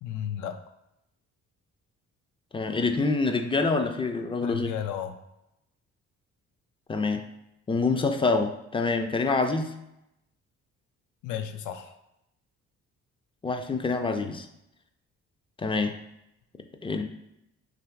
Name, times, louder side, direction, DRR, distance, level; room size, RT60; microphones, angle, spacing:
voice 1, 0.0-0.6 4.4-5.2 11.2-12.0, left 9 dB, 80° left, 7 dB, 0.5 m, -34 dB
voice 2, 2.5-4.7 6.9-7.2 7.7-9.7 13.4-14.5 15.6-16.0 16.8-17.0, left 3 dB, 20° left, 6 dB, 0.4 m, -26 dB
3.1 x 2.6 x 4.4 m, 0.85 s
cardioid pair, 90°, 30 cm